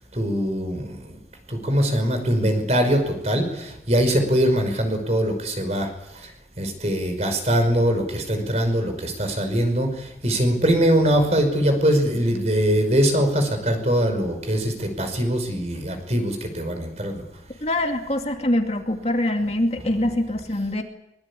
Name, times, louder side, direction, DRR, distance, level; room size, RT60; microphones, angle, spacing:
voice 1, 0.1-1.2 1.5-5.9 6.2-6.3 6.6-17.2, equal, 40° right, 6 dB, 5.4 m, -22 dB
voice 2, 17.6-20.8, left 1 dB, 35° left, 3 dB, 2.5 m, -24 dB
24.0 x 22.0 x 8.5 m, 0.85 s
head